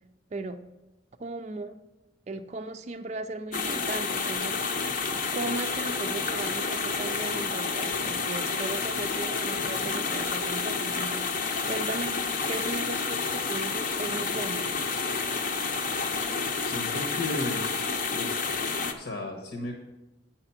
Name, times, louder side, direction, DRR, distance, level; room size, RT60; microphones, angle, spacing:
voice 1, 0.3-0.6 1.2-1.8 2.3-4.8 5.3-14.7, right 2 dB, 35° right, 7 dB, 0.4 m, -37 dB
sound 1, 3.5-18.9, left 4 dB, 45° left, 0.7 m, -30 dB
voice 2, 16.6-17.7 18.1-19.7, left 2 dB, 75° left, 1 dB, 1.1 m, -35 dB
8.9 x 5.8 x 5.7 m, 1.0 s
head